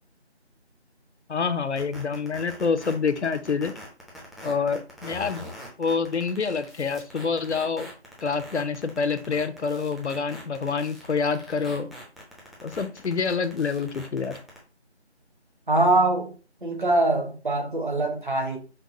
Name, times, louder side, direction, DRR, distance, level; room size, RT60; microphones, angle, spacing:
voice 1, 1.3-3.7 4.4-5.5 5.8-7.9 8.2-11.9 12.6-14.4, left 5 dB, 75° left, 0.6 m, -27 dB
sound 1, 1.8-14.6, left 1 dB, ahead, 0.5 m, -43 dB
voice 2, 15.7-16.3 16.6-18.6, right 2 dB, 45° right, 1.2 m, -23 dB
5.1 x 2.2 x 2.7 m
figure-of-eight pair, 165°, 34 cm